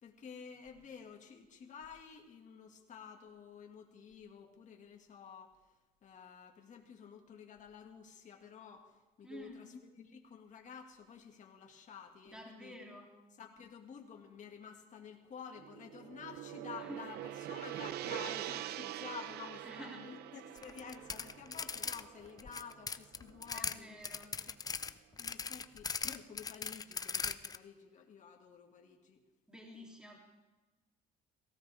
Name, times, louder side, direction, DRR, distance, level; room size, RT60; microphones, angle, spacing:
voice 1, 0.0-5.5 6.0-12.8 13.4-24.0 24.5-24.6 25.2-29.2, left 6 dB, 45° left, 2 dB, 2.1 m, -51 dB
voice 2, 9.2-9.7 12.2-13.1 16.8-17.0 19.6-20.0 23.5-24.3 29.5-30.2, equal, 5° right, -1 dB, 3.2 m, -50 dB
Gong, 15.6-23.9, right 13 dB, 70° right, 0.6 m, -44 dB
sound 1, 20.6-22.0 22.3-23.8 24.0-27.6, left 5 dB, 20° left, 0.5 m, -39 dB
18.0 x 16.5 x 3.6 m, 1.2 s
cardioid pair, 110°, 17 cm